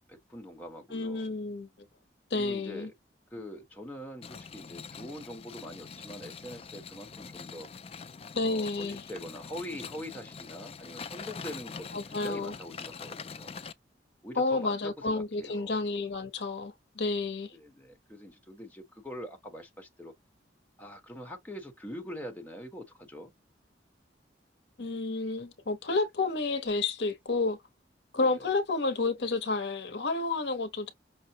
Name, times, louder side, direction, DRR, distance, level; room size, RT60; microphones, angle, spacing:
voice 1, 0.1-1.3 2.3-2.9 3.3-7.7 8.4-13.5 14.2-15.8 17.5-20.1 20.8-23.3 28.1-28.5, equal, 10° left, 1.0 m, -43 dB
voice 2, 0.9-1.7 2.3-2.9 8.3-9.1 11.9-12.5 14.4-17.5 24.8-27.6 28.1-30.9, left 3 dB, 65° left, 0.7 m, -30 dB
sound 1, 4.2-13.7, left 5 dB, 35° left, 0.3 m, -44 dB
5.6 x 2.1 x 2.7 m
head